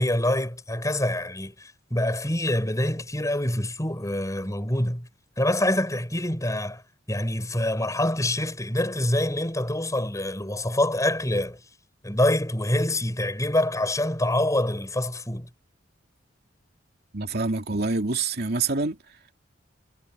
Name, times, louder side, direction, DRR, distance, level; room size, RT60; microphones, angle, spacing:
voice 1, 0.0-5.1 5.4-6.8 7.1-11.6 12.0-15.5, left 1 dB, 15° left, 6.5 m, -25 dB
voice 2, 17.1-19.0, right 3 dB, 55° right, 2.8 m, -26 dB
head